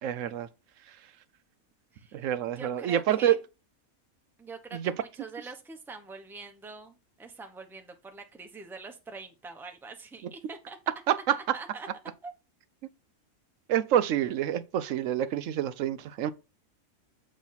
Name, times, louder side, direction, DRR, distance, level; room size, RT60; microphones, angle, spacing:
voice 1, 0.0-0.5 2.1-3.4 4.7-4.9 11.1-11.4 13.7-16.3, right 10 dB, 70° right, 0.9 m, -27 dB
voice 2, 1.9-2.2 2.6-3.4 4.4-10.8 11.3-11.9 12.2-12.3, right 4 dB, ahead, 0.7 m, -44 dB
7.4 x 3.2 x 5.6 m
omnidirectional pair, 1.5 m